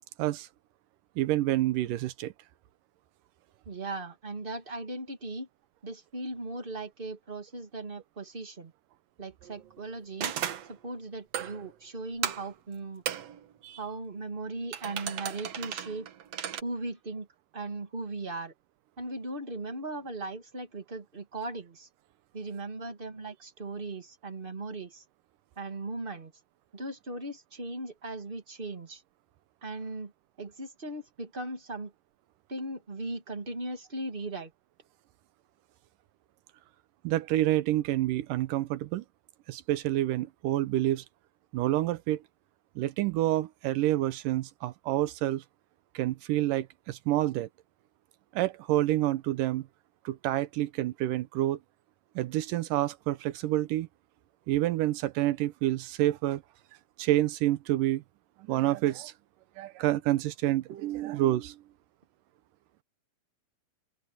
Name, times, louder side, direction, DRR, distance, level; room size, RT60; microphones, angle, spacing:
voice 1, 1.2-2.3 13.6-13.8 37.0-39.0 39.5-41.0 41.5-42.2 42.8-45.4 45.9-47.5 48.3-49.7 50.1-51.6 52.2-53.9 54.5-56.4 57.0-58.0 58.4-59.1 59.6-61.6, right 14 dB, 80° right, 2.4 m, -28 dB
voice 2, 3.7-5.5 5.8-8.7 9.2-10.3 10.6-13.0 13.8-16.1 16.6-17.3 17.5-18.5 19.0-21.9 22.3-25.0 25.6-26.3 26.7-29.0 29.6-30.1 30.4-31.9 32.5-34.5, right 2 dB, 20° right, 1.8 m, -38 dB
sound 1, 9.4-9.7 10.2-10.7 11.3-11.7 12.2-12.5 13.1-13.5 14.7-16.6, right 10 dB, 60° right, 2.1 m, -35 dB
open air
omnidirectional pair, 3.9 m